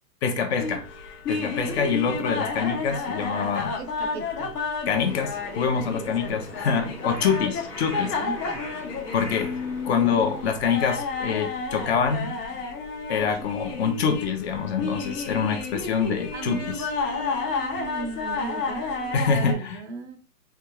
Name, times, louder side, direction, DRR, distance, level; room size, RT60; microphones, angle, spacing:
voice 1, 0.2-0.8 1.3-3.7 4.9-8.1 9.1-12.4 13.1-16.8 19.1-19.8, left 6 dB, 45° left, 6 dB, 0.6 m, -25 dB
sound 1, 0.6-19.5, left 4 dB, 75° left, 1.1 m, -31 dB
voice 2, 3.8-4.5 8.0-8.6 10.0-10.2 16.3-20.2, right 4 dB, 45° right, 8 dB, 0.5 m, -37 dB
Crow, 5.0-10.5, left 1 dB, 5° left, 0.5 m, -40 dB
3.4 x 2.3 x 3.0 m, 0.37 s
hypercardioid pair, 135°, 48 cm